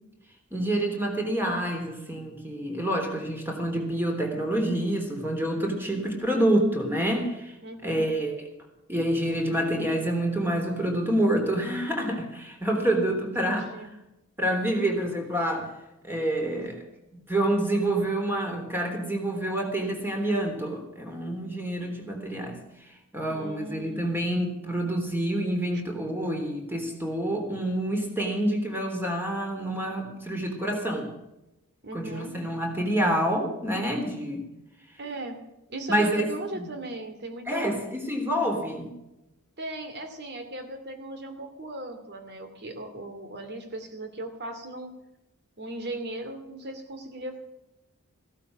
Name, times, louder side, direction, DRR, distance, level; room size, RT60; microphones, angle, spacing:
voice 1, 0.5-7.5 7.8-8.4 8.9-13.7 14.4-15.7 16.0-16.8 17.1-22.6 23.1-31.1 31.9-34.4 35.9-36.2 36.5-36.6 37.5-38.9, right 1 dB, 10° right, 2 dB, 3.4 m, -27 dB
voice 2, 7.6-8.1 13.4-13.9 23.3-24.1 31.8-32.4 35.0-35.4 35.7-37.7 39.6-44.9 45.6-47.4, right 1 dB, 50° right, 7 dB, 2.5 m, -38 dB
15.5 x 12.5 x 6.2 m, 0.93 s
head